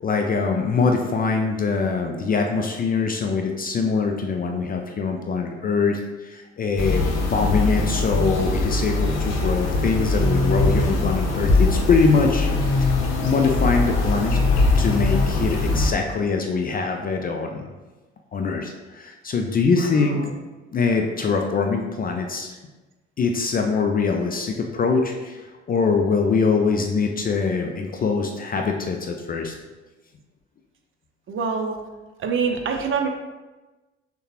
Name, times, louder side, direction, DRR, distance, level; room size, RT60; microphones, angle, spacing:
voice 1, 0.0-12.5 12.8-12.9 13.2-14.4 14.8-17.7 18.3-20.3 20.7-22.6 23.2-29.5, left 4 dB, 25° left, 3 dB, 0.4 m, -23 dB
sound 1, 6.8-15.9, left 2 dB, 50° left, 0.8 m, -21 dB
voice 2, 19.9-20.3 31.3-31.8 32.2-33.1, right 5 dB, 35° right, 3 dB, 0.6 m, -25 dB
6.3 x 2.2 x 2.9 m, 1.2 s
figure-of-eight pair, 45°, 34 cm